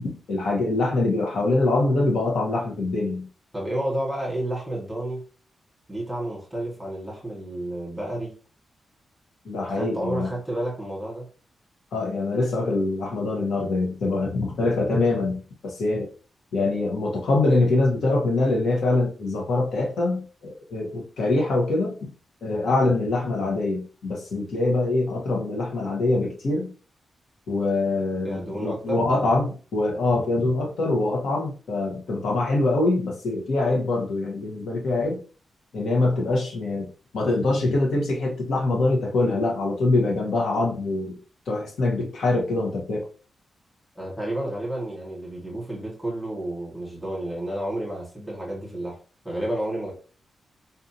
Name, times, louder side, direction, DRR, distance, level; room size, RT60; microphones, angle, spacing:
voice 1, 0.3-3.3 9.4-10.3 11.9-16.1 16.5-21.9 22.4-26.7 27.5-35.2 35.7-41.2 41.5-43.0, left 2 dB, 85° left, 0 dB, 1.2 m, -24 dB
voice 2, 3.5-5.2 5.9-8.3 9.6-11.3 28.2-29.0 43.9-49.0 49.2-49.9, right 1 dB, ahead, -5 dB, 1.1 m, -31 dB
4.0 x 2.7 x 2.8 m, 0.37 s
wide cardioid pair, 160°, 0 cm